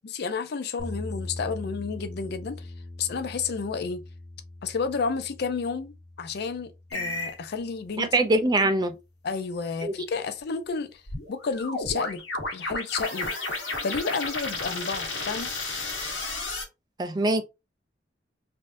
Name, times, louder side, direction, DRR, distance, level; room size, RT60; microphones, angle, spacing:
voice 1, 0.0-2.7 3.0-4.0 4.6-8.1 9.2-11.0 11.3-12.2 12.5-13.3 13.8-15.5, left 5 dB, 60° left, 0.4 m, -31 dB
sound 1, 0.8-8.9, left 1 dB, 20° left, 1.1 m, -42 dB
sound 2, 6.9-7.4 11.1-16.6, left 2 dB, 80° left, 1.2 m, -32 dB
voice 2, 8.0-8.9 9.8-9.9 17.0-17.4, right 2 dB, 20° right, 0.3 m, -23 dB
3.4 x 2.6 x 2.5 m
head